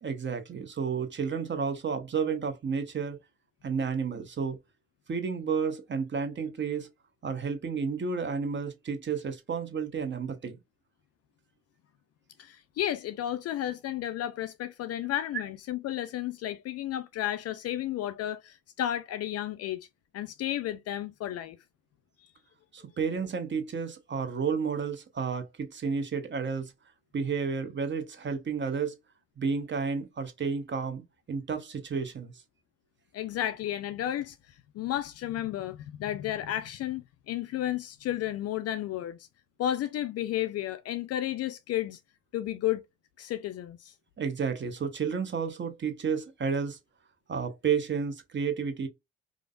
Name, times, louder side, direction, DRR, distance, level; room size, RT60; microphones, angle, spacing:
voice 1, 0.0-3.2 3.6-4.6 5.1-6.9 7.2-10.6 22.7-26.7 27.1-28.9 29.4-31.0 31.3-32.3 44.2-46.8 47.3-48.9, right 6 dB, 30° right, 0.9 m, -31 dB
voice 2, 12.4-19.9 20.1-21.6 33.1-34.4 34.7-39.2 39.6-42.0 42.3-42.8 43.2-43.9, left 12 dB, 40° left, 0.4 m, -32 dB
4.9 x 2.0 x 2.4 m
figure-of-eight pair, 45°, 39 cm